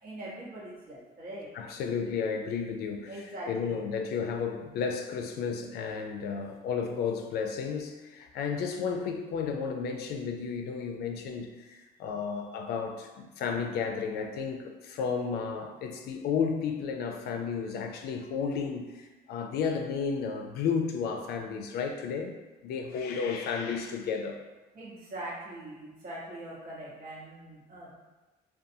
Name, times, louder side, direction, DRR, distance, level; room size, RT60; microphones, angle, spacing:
voice 1, 0.0-1.5 3.1-3.8 24.7-28.0, right 1 dB, 60° right, -7 dB, 1.0 m, -42 dB
voice 2, 1.5-22.3 22.6-24.4, left 6 dB, 70° left, 4 dB, 0.4 m, -33 dB
2.6 x 2.3 x 2.6 m, 1.1 s
cardioid pair, 110°, 17 cm